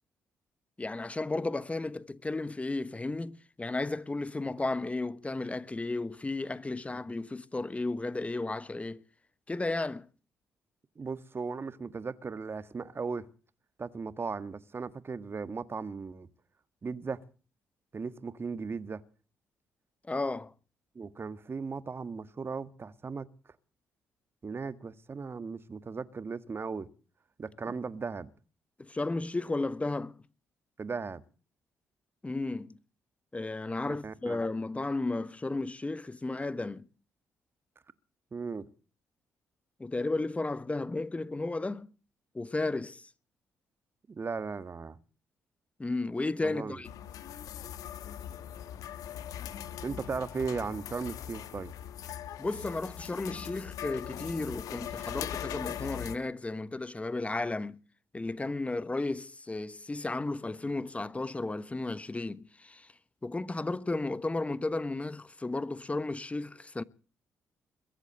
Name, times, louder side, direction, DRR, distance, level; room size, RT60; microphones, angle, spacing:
voice 1, 0.8-9.0 9.5-10.0 20.0-20.5 28.8-30.2 32.2-32.7 33.3-36.9 39.8-41.9 42.3-43.1 45.8-46.9 52.4-57.8 58.1-62.9 63.2-66.8, left 2 dB, 20° left, 1.0 m, -34 dB
voice 2, 10.9-13.2 13.8-16.3 16.8-17.2 17.9-19.0 20.9-23.3 24.4-26.9 27.4-28.3 30.8-31.2 34.0-34.4 38.3-38.7 44.1-45.0 46.4-46.8 49.8-51.7, right 4 dB, 40° right, 1.5 m, -37 dB
sound 1, 46.8-56.2, left 10 dB, 70° left, 1.2 m, -40 dB
22.0 x 8.2 x 7.9 m
hypercardioid pair, 50°, 6 cm